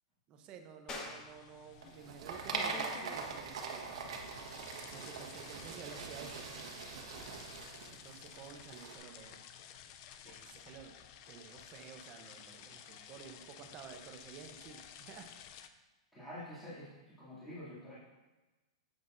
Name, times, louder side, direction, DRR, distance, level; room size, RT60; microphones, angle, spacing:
voice 1, 0.3-4.0 4.9-6.6 7.9-9.4 10.2-11.0 11.3-15.3, right 7 dB, 30° right, 6 dB, 0.8 m, -52 dB
sound 1, 0.9-11.1, left 2 dB, 20° left, 1.0 m, -55 dB
sound 2, 1.0-15.7, left 9 dB, 40° left, 0.5 m, -53 dB
sound 3, 1.8-8.9, right 5 dB, 70° right, 1.3 m, -42 dB
voice 2, 16.1-18.0, left 1 dB, 5° left, -12 dB, 2.6 m, -47 dB
9.2 x 7.9 x 2.6 m, 1.2 s
supercardioid pair, 155°, 3 cm